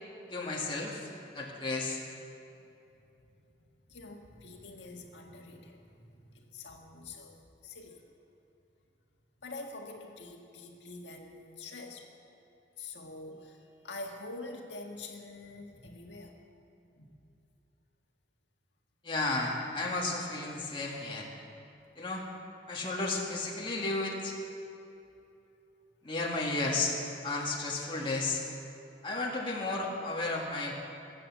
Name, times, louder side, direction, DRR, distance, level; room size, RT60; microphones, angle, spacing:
voice 1, 0.3-1.1 1.3-2.0 19.0-21.3 22.0-22.3 22.7-24.4 26.0-27.0 27.2-28.4 29.0-30.7, left 2 dB, 25° left, -2 dB, 1.8 m, -33 dB
voice 2, 3.9-8.0 9.4-12.1 12.8-16.4 17.0-17.2, left 2 dB, 75° left, 1 dB, 1.8 m, -46 dB
20.5 x 8.4 x 7.3 m, 2.7 s
head